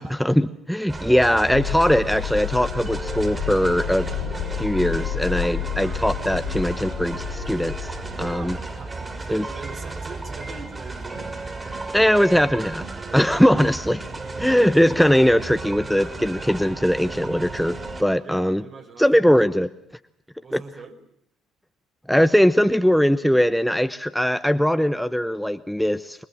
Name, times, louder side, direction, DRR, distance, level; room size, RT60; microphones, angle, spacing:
voice 1, 0.2-4.1 4.6-8.5 9.3-9.4 11.9-12.9 13.1-14.1 14.4-18.6 19.0-19.7 20.5-20.6 22.1-26.2, equal, ahead, 11 dB, 1.0 m, -20 dB
sound 1, 0.9-18.0, right 3 dB, 25° right, 6.0 m, -34 dB
sound 2, 1.5-8.7, left 8 dB, 75° left, 2.8 m, -31 dB
voice 2, 8.1-8.9 9.2-11.3 18.2-19.5 20.4-21.0, right 4 dB, 50° right, 3 dB, 5.9 m, -41 dB
27.0 x 22.5 x 7.4 m, 0.74 s
hypercardioid pair, 55°, 0 cm